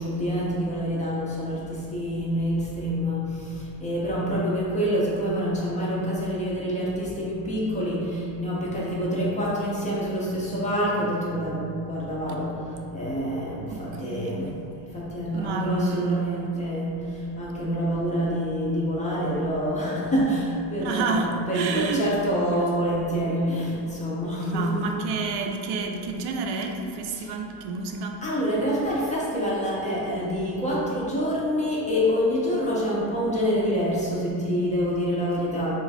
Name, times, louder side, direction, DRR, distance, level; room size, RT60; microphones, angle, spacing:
voice 1, 0.0-14.6 14.9-24.9 27.1-27.4 28.2-35.8, equal, 20° left, -6 dB, 0.4 m, -27 dB
voice 2, 13.7-14.3 15.3-16.6 20.8-22.7 24.4-28.2, right 4 dB, 75° right, 3 dB, 0.5 m, -29 dB
3.0 x 2.3 x 4.0 m, 2.6 s
cardioid pair, 140°, 44 cm